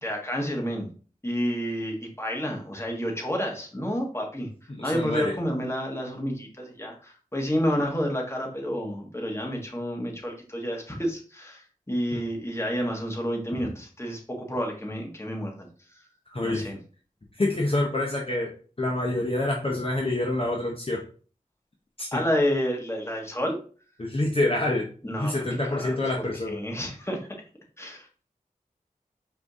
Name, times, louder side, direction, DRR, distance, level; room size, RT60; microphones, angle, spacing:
voice 1, 0.0-0.9 1.2-4.5 4.8-15.7 15.9-16.0 16.4-16.8 22.1-23.6 25.0-27.3 27.8-28.2, equal, 20° left, 0 dB, 1.4 m, -30 dB
voice 2, 4.7-5.3 12.1-12.2 16.3-16.7 17.3-18.5 18.8-21.0 22.0-22.2 24.0-24.9 25.2-26.6, left 2 dB, 40° left, -1 dB, 0.8 m, -27 dB
5.0 x 2.7 x 3.5 m, 0.40 s
wide cardioid pair, 50°, 14 cm